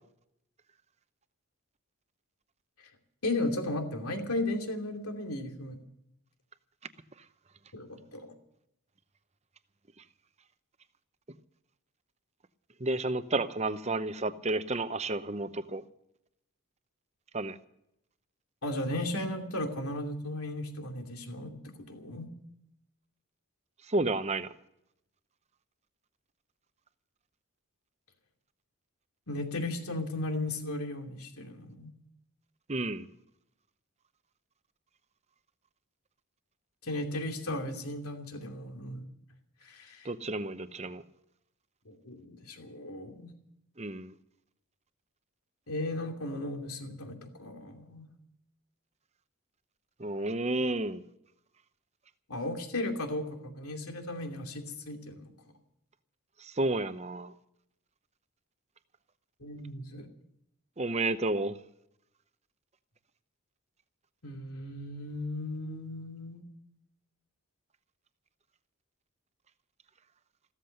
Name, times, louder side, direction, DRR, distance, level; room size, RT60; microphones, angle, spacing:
voice 1, 3.2-5.8 7.7-8.3 18.6-22.3 29.3-31.9 36.8-39.1 39.6-40.1 41.9-43.3 45.7-48.1 52.3-55.3 59.4-60.1 64.2-66.4, left 1 dB, 90° left, 2.7 m, -36 dB
voice 2, 12.8-15.8 17.3-17.6 23.9-24.5 32.7-33.1 40.0-41.0 43.8-44.1 50.0-51.0 56.4-57.3 60.8-61.6, right 2 dB, 30° right, 0.8 m, -31 dB
15.0 x 13.5 x 6.6 m
head